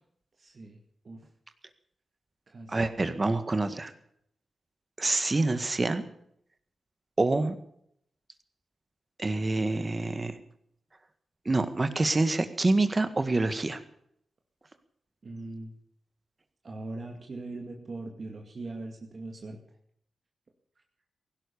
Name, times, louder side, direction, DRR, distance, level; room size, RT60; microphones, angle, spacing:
voice 1, 0.4-0.8 1.0-1.2 2.5-2.9 15.2-15.7 16.6-19.6, right 2 dB, 55° right, 2 dB, 2.2 m, -40 dB
voice 2, 2.7-3.9 5.0-6.0 7.2-7.6 9.2-10.4 11.5-13.8, right 2 dB, 35° right, 10 dB, 1.8 m, -26 dB
16.5 x 11.5 x 7.0 m, 0.71 s
cardioid pair, 55°, 0 cm